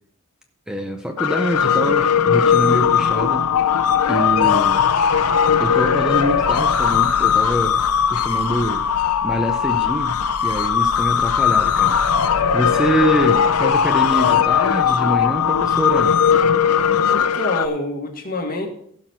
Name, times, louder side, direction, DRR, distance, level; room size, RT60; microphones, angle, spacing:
voice 1, 0.7-3.5 4.1-4.8 5.6-7.8 8.1-8.9 9.2-12.0 12.5-16.2, equal, 5° right, 4 dB, 0.6 m, -25 dB
sound 1, 1.2-17.7, left 7 dB, 80° left, 0.6 m, -18 dB
voice 2, 17.1-18.7, left 1 dB, 40° left, 1 dB, 2.0 m, -26 dB
16.0 x 6.0 x 4.6 m, 0.67 s
head